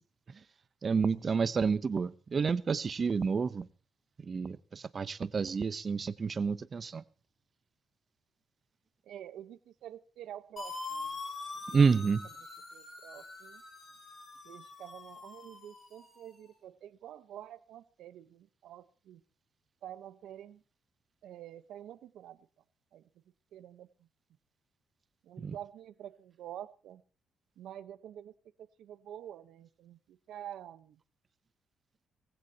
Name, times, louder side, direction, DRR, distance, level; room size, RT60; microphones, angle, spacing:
voice 1, 0.8-3.7 4.2-7.0 11.7-12.3 25.4-25.6, right 5 dB, 40° right, 16 dB, 0.7 m, -29 dB
voice 2, 9.0-11.2 12.0-12.1 12.7-13.6 14.4-19.2 19.8-20.6 21.2-22.5 22.9-23.0 23.5-24.1 25.2-27.0 27.6-31.0, right 11 dB, 80° right, 13 dB, 1.0 m, -48 dB
sound 1, 10.6-16.3, left 3 dB, 35° left, 7.0 m, -44 dB
21.5 x 15.5 x 2.9 m, 0.37 s
cardioid pair, 90°, 0 cm